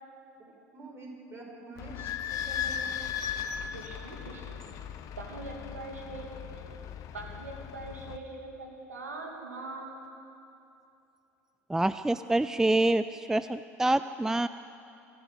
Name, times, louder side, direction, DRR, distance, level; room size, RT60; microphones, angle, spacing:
voice 1, 0.4-3.2, right 2 dB, 30° right, 1 dB, 5.2 m, -47 dB
Idling / Squeak, 1.8-8.2, left 8 dB, 45° left, 1.3 m, -37 dB
voice 2, 3.7-4.6 5.1-6.8 7.1-10.1, right 2 dB, 80° right, 1 dB, 2.5 m, -42 dB
voice 3, 11.7-14.5, right 2 dB, 5° right, 13 dB, 0.4 m, -26 dB
26.0 x 13.0 x 8.2 m, 2.7 s
figure-of-eight pair, 70°, 8 cm